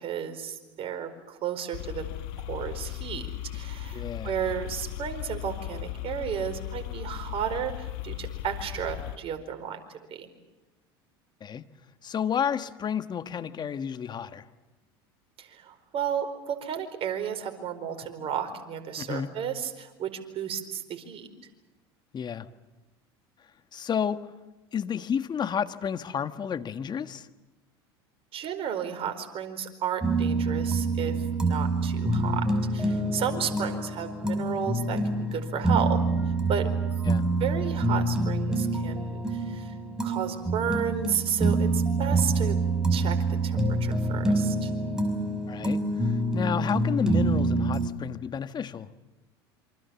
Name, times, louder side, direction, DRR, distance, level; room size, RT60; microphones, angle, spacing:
voice 1, 0.0-2.0 2.4-3.2 3.5-9.8 10.1-10.3 15.4-21.3 28.3-32.4 32.7-36.0 36.3-36.7 37.4-39.7 40.0-42.6 42.9-43.2 43.4-44.7, right 8 dB, 45° right, 7 dB, 4.7 m, -33 dB
sound 1, 1.7-9.2, left 13 dB, 65° left, 1.5 m, -37 dB
voice 2, 3.9-4.3 11.4-11.7 12.0-14.4 19.0-19.4 22.1-22.5 23.7-24.2 24.7-27.3 37.1-37.3 45.5-48.9, left 8 dB, 35° left, 10 dB, 1.6 m, -31 dB
sound 2, 30.0-47.9, right 2 dB, 5° right, 5.3 m, -26 dB
27.5 x 25.5 x 7.2 m, 1.1 s
hypercardioid pair, 85°, 13 cm